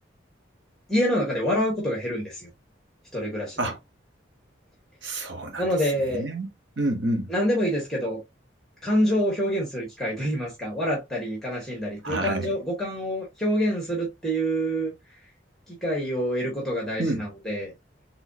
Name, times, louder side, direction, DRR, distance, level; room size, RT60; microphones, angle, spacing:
voice 1, 0.9-2.5 3.1-3.6 5.6-6.3 7.3-8.2 8.8-14.9 15.7-17.7, equal, ahead, 1.5 m, -26 dB
voice 2, 5.0-5.7 6.1-6.5 6.8-7.3 12.0-12.5 17.0-17.3, right 1 dB, 70° right, 1.2 m, -28 dB
4.0 x 3.8 x 2.7 m
head